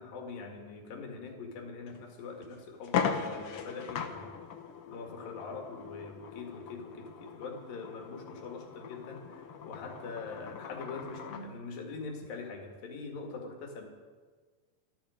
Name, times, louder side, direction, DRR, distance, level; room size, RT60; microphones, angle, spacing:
voice 1, 0.0-4.3 4.9-13.9, left 4 dB, 90° left, 2 dB, 3.9 m, -43 dB
sound 1, 1.9-2.0 2.4-2.5 2.8-11.5, left 7 dB, 65° left, 1.4 m, -39 dB
25.5 x 11.0 x 5.1 m, 1.5 s
omnidirectional pair, 3.9 m